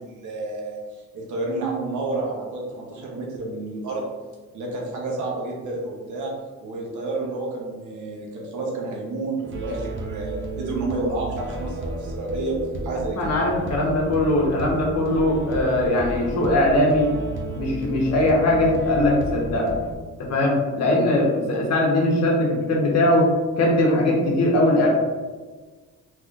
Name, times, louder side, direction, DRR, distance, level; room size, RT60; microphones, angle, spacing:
voice 1, 0.0-4.1 4.5-6.3 6.6-12.6 12.8-13.4 20.9-21.1, right 2 dB, 75° right, -2 dB, 1.0 m, -30 dB
sound 1, 9.4-20.0, right 2 dB, 40° right, 0.6 m, -33 dB
voice 2, 13.2-17.1 17.5-19.7 20.2-23.3 23.6-24.9, left 1 dB, 60° left, -1 dB, 1.0 m, -20 dB
3.6 x 3.0 x 2.4 m, 1.4 s
cardioid pair, 90°, 30 cm